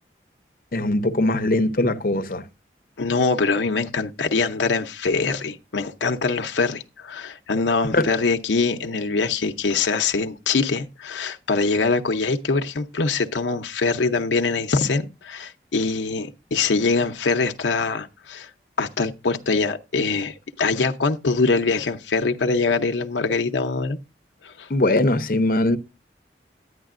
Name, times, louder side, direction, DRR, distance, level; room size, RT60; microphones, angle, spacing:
voice 1, 0.7-2.5 7.9-8.2 24.7-25.8, left 2 dB, 50° left, 0.7 m, -21 dB
voice 2, 3.0-18.5 18.8-24.0 24.4-24.7, left 4 dB, 90° left, 0.7 m, -23 dB
10.5 x 9.5 x 2.4 m
head